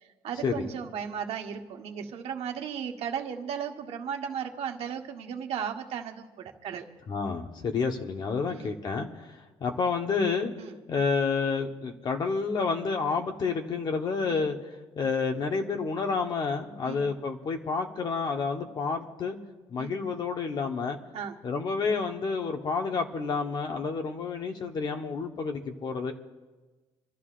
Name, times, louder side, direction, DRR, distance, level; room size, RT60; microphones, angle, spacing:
voice 1, 0.2-6.8 8.4-8.7 10.6-10.8 14.3-14.5 16.8-17.1 19.8-20.0 21.1-21.4, right 8 dB, 65° right, 4 dB, 1.4 m, -35 dB
voice 2, 7.1-10.5 10.9-14.6 15.0-19.4 19.7-21.0 21.4-26.1, left 5 dB, 40° left, 3 dB, 1.2 m, -29 dB
28.0 x 13.0 x 2.5 m, 1.2 s
cardioid pair, 160°, 11 cm